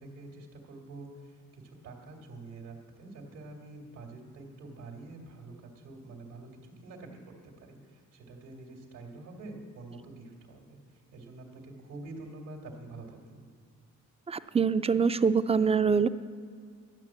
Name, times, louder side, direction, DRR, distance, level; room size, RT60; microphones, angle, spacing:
voice 1, 0.0-13.4, right 2 dB, 90° right, -2 dB, 2.3 m, -47 dB
voice 2, 14.3-16.1, right 6 dB, 20° right, 13 dB, 0.4 m, -24 dB
12.0 x 9.0 x 7.2 m, 2.1 s
cardioid pair, 90°, 30 cm